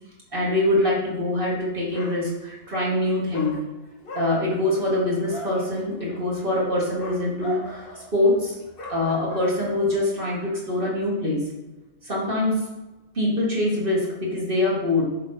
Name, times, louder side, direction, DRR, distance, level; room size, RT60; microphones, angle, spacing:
voice 1, 0.3-3.7 4.1-7.9 8.1-8.6 8.9-11.5 12.0-12.7 13.2-15.1, left 1 dB, 40° right, -5 dB, 2.0 m, -24 dB
Dog, 1.5-1.7 1.9-2.7 3.3-10.0, equal, 45° left, 1.1 m, -39 dB
6.8 x 5.2 x 4.0 m, 1.1 s
omnidirectional pair, 1.5 m